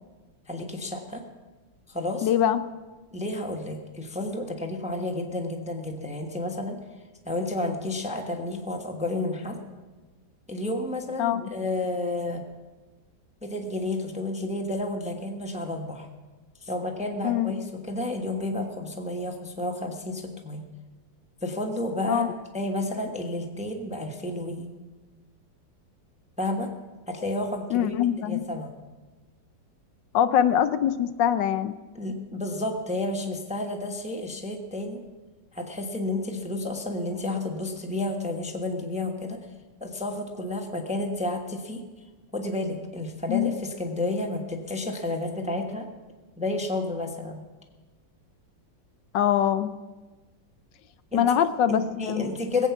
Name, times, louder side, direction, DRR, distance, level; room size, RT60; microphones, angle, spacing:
voice 1, 0.5-1.2 1.9-2.3 3.1-6.8 7.2-9.6 10.5-12.5 13.4-16.1 16.6-20.6 21.4-22.3 22.5-24.7 26.4-26.7 27.1-27.9 28.2-28.7 31.9-35.0 35.5-39.4 39.8-41.8 42.3-45.9 46.4-47.4 51.1-51.3 51.7-52.7, left 2 dB, 5° right, 3 dB, 0.9 m, -31 dB
voice 2, 2.2-2.6 11.2-11.5 17.2-17.5 22.1-22.3 27.7-28.4 30.1-31.7 43.3-43.5 49.1-49.7 51.1-52.3, left 10 dB, 80° left, 12 dB, 1.3 m, -23 dB
20.5 x 8.3 x 5.9 m, 1.3 s
omnidirectional pair, 2.0 m